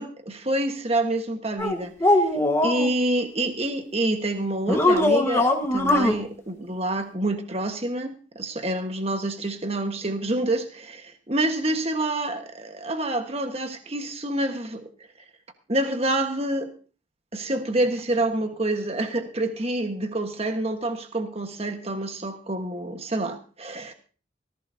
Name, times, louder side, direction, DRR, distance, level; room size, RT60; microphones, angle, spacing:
voice 1, 0.0-2.3 2.6-14.8 15.7-16.7 17.3-23.9, right 1 dB, 30° right, 6 dB, 1.5 m, -27 dB
sound 1, 1.6-2.9 4.7-6.1, left 1 dB, 15° left, 1.5 m, -21 dB
18.5 x 15.5 x 2.8 m, 0.39 s
head